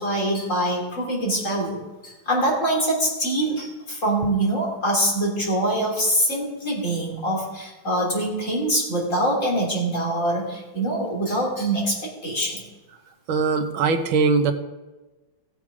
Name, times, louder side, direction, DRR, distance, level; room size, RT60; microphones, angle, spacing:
voice 1, 0.0-12.6, right 1 dB, 40° left, -3 dB, 3.3 m, -24 dB
voice 2, 13.3-14.5, right 4 dB, 80° right, 7 dB, 1.7 m, -21 dB
16.0 x 7.3 x 4.9 m, 1.2 s
omnidirectional pair, 2.2 m